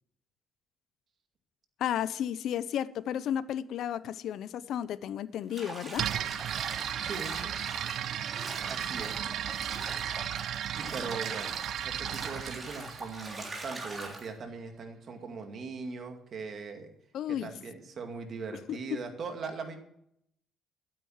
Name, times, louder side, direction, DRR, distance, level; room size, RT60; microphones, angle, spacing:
voice 1, 1.8-6.1 17.1-17.5 18.7-19.0, left 10 dB, 70° left, 0.6 m, -33 dB
Bathtub (filling or washing), 5.5-14.3, right 2 dB, 25° right, 3.2 m, -42 dB
sound 1, 5.9-13.8, right 10 dB, 65° right, 0.4 m, -35 dB
voice 2, 7.0-7.4 8.7-9.2 10.7-16.9 17.4-19.8, right 4 dB, 50° right, 2.2 m, -40 dB
13.0 x 8.8 x 6.4 m
cardioid pair, 110°, 0 cm